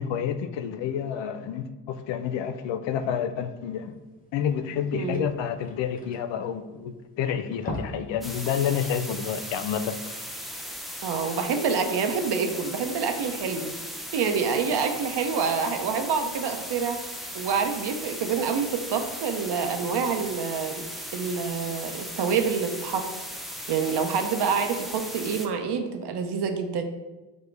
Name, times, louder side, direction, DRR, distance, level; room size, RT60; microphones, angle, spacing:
voice 1, 0.0-4.0 4.3-10.0, left 8 dB, 65° left, 10 dB, 0.5 m, -29 dB
sound 1, 4.0-4.1 4.4-4.5 4.7-7.0 7.4-8.2 8.5-8.7 9.1-9.2, left 1 dB, 15° left, 0.8 m, -38 dB
voice 2, 4.9-5.3 11.0-17.0 17.3-20.8 21.1-23.0 23.7-26.8, right 6 dB, 55° right, 6 dB, 0.7 m, -27 dB
sound 2, 8.2-25.5, equal, ahead, 0.4 m, -37 dB
5.0 x 2.2 x 4.5 m, 1.1 s
supercardioid pair, 75°, 48 cm